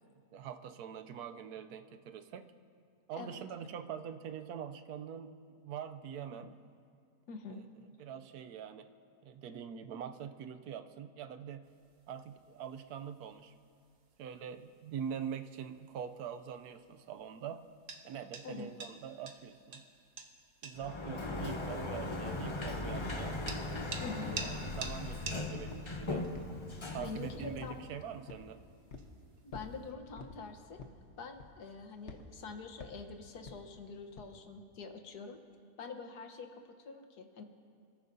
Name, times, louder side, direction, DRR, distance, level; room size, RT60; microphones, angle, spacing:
voice 1, 0.3-2.5 3.1-5.3 5.6-6.5 7.5-7.6 8.0-8.9 9.2-11.6 12.1-13.5 14.2-17.6 18.0-19.8 20.6-23.4 24.4-26.2 26.9-28.6, right 8 dB, 80° right, 9 dB, 1.1 m, -44 dB
voice 2, 7.3-7.6 18.4-18.7 24.0-24.4 26.9-27.8 29.4-30.8 31.2-35.4 35.8-37.4, left 4 dB, 80° left, 6 dB, 1.6 m, -45 dB
sound 1, 11.6-29.9, right 4 dB, 55° right, 1.3 m, -51 dB
Sliding door, 20.8-27.9, left 2 dB, 25° left, 0.6 m, -39 dB
sound 2, 25.0-25.3 25.7-26.0 26.3-27.2 27.6-27.9 28.3-28.5 28.9-29.1 29.5-29.8 30.2-30.4 30.8-31.1 31.4-31.7 32.1-32.3 32.8-33.1 33.5-33.6 34.2-34.3, left 3 dB, 50° left, 1.2 m, -49 dB
27.5 x 14.0 x 2.7 m, 2.3 s
omnidirectional pair, 1.7 m